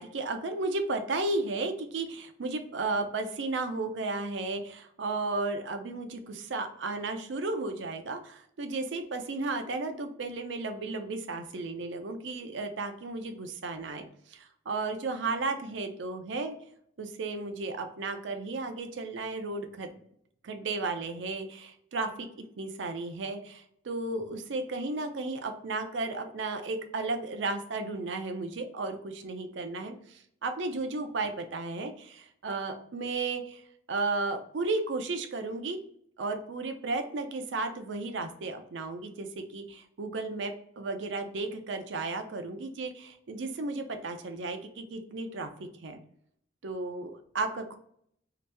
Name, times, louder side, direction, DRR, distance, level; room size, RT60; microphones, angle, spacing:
voice 1, 0.0-16.6 17.0-19.9 20.4-33.6 33.9-35.8 36.2-46.0 46.6-47.8, right 3 dB, 75° right, 6 dB, 0.5 m, -34 dB
2.9 x 2.6 x 3.3 m, 0.68 s
head